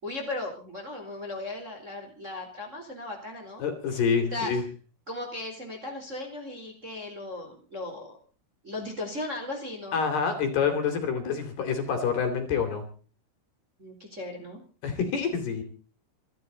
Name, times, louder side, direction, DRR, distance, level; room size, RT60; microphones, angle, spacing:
voice 1, 0.0-3.6 4.3-4.5 5.1-8.2 8.6-10.0 13.8-14.6, left 2 dB, 15° right, 2 dB, 3.6 m, -37 dB
voice 2, 3.6-4.6 9.9-12.8 14.8-15.6, left 6 dB, 55° left, 6 dB, 4.8 m, -27 dB
27.5 x 13.0 x 4.1 m, 0.38 s
omnidirectional pair, 5.9 m